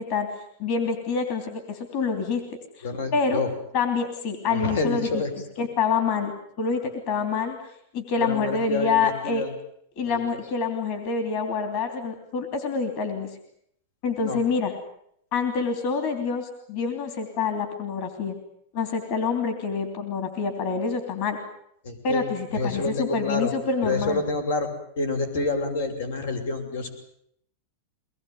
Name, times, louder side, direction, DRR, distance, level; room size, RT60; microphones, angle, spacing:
voice 1, 0.0-2.4 2.8-3.4 3.7-5.2 5.6-6.3 6.6-7.6 7.9-9.4 10.0-13.3 14.0-14.7 15.3-18.4 18.7-21.4 22.0-24.2, left 5 dB, 35° left, 7 dB, 3.1 m, -27 dB
voice 2, 2.8-3.5 4.5-5.3 8.2-9.5 10.0-10.2 14.2-14.4 21.8-22.3 22.5-23.5 23.8-24.7 25.0-26.9, left 3 dB, 80° left, 7 dB, 7.0 m, -28 dB
23.5 x 20.5 x 9.4 m, 0.70 s
supercardioid pair, 175°, 0 cm